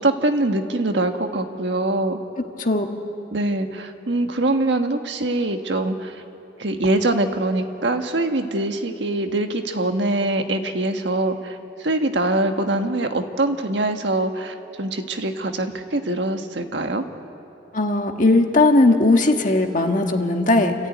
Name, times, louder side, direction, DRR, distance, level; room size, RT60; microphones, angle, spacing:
voice 1, 0.0-2.2 3.3-6.2 6.6-17.0, right 2 dB, 75° right, 6 dB, 1.4 m, -23 dB
voice 2, 17.7-20.7, left 2 dB, 45° left, 4 dB, 1.6 m, -18 dB
29.5 x 14.0 x 9.3 m, 2.9 s
head